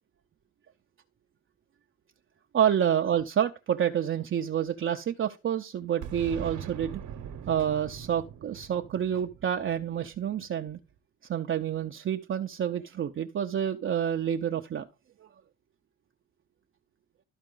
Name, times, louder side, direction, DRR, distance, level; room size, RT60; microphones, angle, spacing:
voice 1, 2.5-7.0 7.5-10.8 11.3-14.9, right 9 dB, 45° right, 0.6 m, -28 dB
Boom, 6.0-10.7, right 8 dB, 70° right, 1.1 m, -42 dB
13.0 x 4.4 x 3.8 m
cardioid pair, 90°, 30 cm